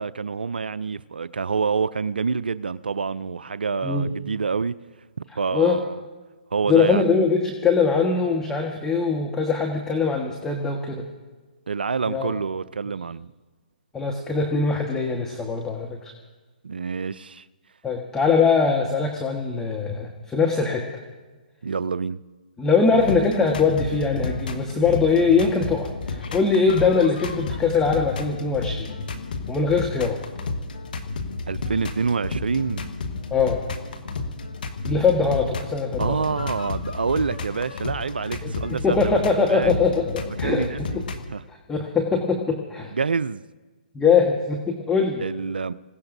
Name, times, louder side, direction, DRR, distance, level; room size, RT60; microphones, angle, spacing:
voice 1, 0.0-4.7 5.4-5.9 6.5-7.0 11.7-13.3 16.6-17.5 21.6-22.2 31.5-32.8 36.0-39.2 39.5-39.8 40.4-41.0 41.3-41.4 42.9-43.4 45.2-45.7, right 5 dB, 85° right, 0.5 m, -27 dB
voice 2, 6.7-11.0 12.1-12.4 13.9-16.1 17.8-20.9 22.6-28.9 29.5-30.2 33.3-33.6 34.8-36.2 38.4-38.5 38.8-40.7 41.5-42.9 43.9-45.2, left 5 dB, 10° left, 1.4 m, -22 dB
sound 1, 22.8-41.2, left 3 dB, 70° left, 1.6 m, -32 dB
27.5 x 17.0 x 2.7 m
hypercardioid pair, 135°, 5 cm